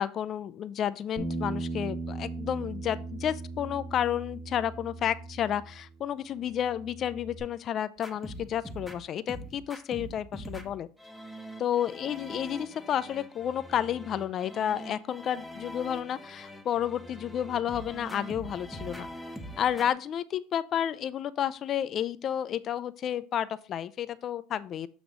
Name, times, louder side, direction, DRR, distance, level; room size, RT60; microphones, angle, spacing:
voice 1, 0.0-10.9 11.6-19.1 19.6-24.9, left 10 dB, 40° left, 16 dB, 0.4 m, -31 dB
Bass guitar, 1.2-5.9 6.2-7.4, right 3 dB, 45° right, 2.9 m, -38 dB
sound 1, 8.0-19.9, equal, ahead, 0.8 m, -43 dB
7.8 x 3.0 x 5.2 m, 0.38 s
supercardioid pair, 125°, 0 cm